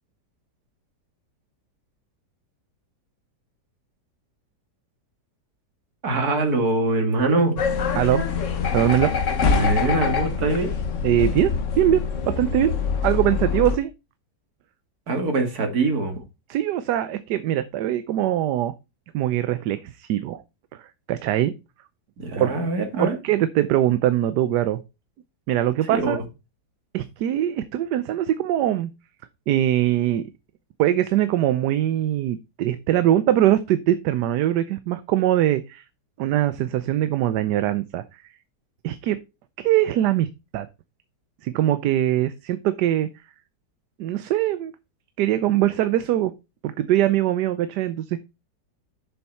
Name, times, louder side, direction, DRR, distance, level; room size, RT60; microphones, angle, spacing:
voice 1, 6.0-7.6 9.5-10.7 15.1-16.2 22.2-23.2 25.9-26.2, right 2 dB, 60° right, 4 dB, 2.5 m, -23 dB
sound 1, 7.6-13.8, left 5 dB, 50° left, 1.3 m, -24 dB
voice 2, 8.7-9.1 11.0-12.7 13.0-13.9 16.5-18.7 19.1-20.4 20.7-21.5 22.4-22.5 23.0-24.8 25.5-26.2 26.9-28.9 29.5-30.3 30.8-35.8 36.2-38.2 38.8-39.2 39.6-40.7 41.4-43.1 44.0-44.7 45.2-46.3 46.6-48.2, right 12 dB, 75° right, 12 dB, 1.2 m, -22 dB
7.0 x 7.0 x 4.3 m, 0.26 s
omnidirectional pair, 1.8 m